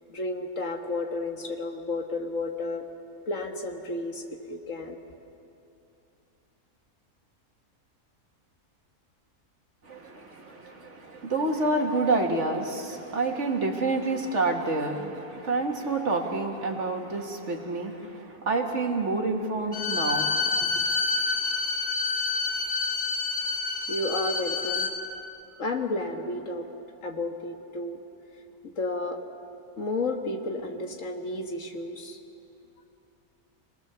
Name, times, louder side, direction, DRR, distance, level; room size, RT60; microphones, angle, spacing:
voice 1, 0.1-2.8 3.3-5.0 23.9-24.9 25.6-26.6 27.0-28.0 28.6-29.2 29.8-32.2, left 2 dB, 60° left, 3 dB, 1.8 m, -32 dB
voice 2, 9.8-20.5, right 3 dB, 55° right, 2 dB, 2.0 m, -28 dB
Bowed string instrument, 19.7-24.9, left 4 dB, 35° right, 3.9 m, -28 dB
26.0 x 18.5 x 6.9 m, 2.7 s
omnidirectional pair, 1.5 m